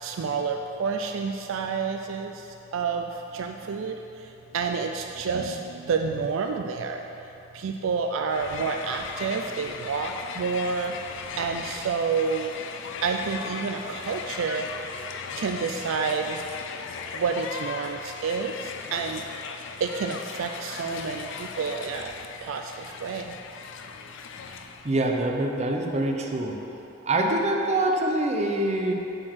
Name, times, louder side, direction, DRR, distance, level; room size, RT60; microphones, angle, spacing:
voice 1, 0.0-7.1 7.5-10.9 11.4-12.5 13.0-14.7 15.4-16.4 17.1-19.2 19.8-22.1 22.4-23.3, right 5 dB, 65° right, 4 dB, 0.4 m, -29 dB
Crowd, 8.3-25.0, left 6 dB, 65° left, 0.5 m, -38 dB
voice 2, 24.8-26.6 27.0-28.9, right 1 dB, 35° right, 1 dB, 0.7 m, -25 dB
7.6 x 4.5 x 6.1 m, 3.0 s
head